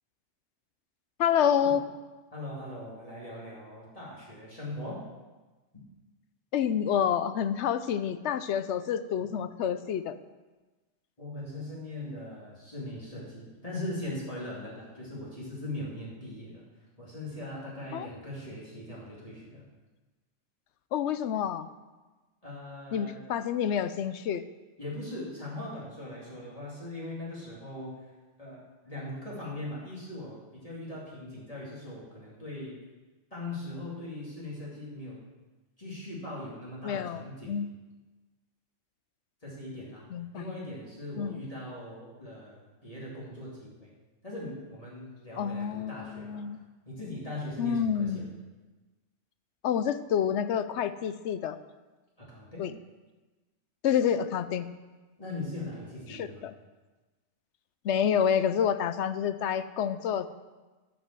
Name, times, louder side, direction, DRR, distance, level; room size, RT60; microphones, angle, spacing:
voice 1, 1.2-1.8 6.5-10.2 17.9-18.1 20.9-21.7 22.9-24.4 36.8-37.7 40.1-40.5 41.2-41.5 45.4-46.6 47.6-48.3 49.6-51.6 52.6-52.7 53.8-54.7 56.1-56.5 57.8-60.3, left 8 dB, 70° left, 12 dB, 0.9 m, -28 dB
voice 2, 2.3-5.1 11.2-16.6 17.0-19.6 22.4-23.2 24.8-28.0 28.4-32.8 33.3-35.2 35.8-37.5 39.4-40.0 40.3-43.9 44.2-46.5 46.8-48.2 52.2-52.7 55.2-56.4, left 1 dB, 30° left, -6 dB, 2.8 m, -40 dB
11.0 x 5.3 x 7.5 m, 1.2 s
omnidirectional pair, 1.3 m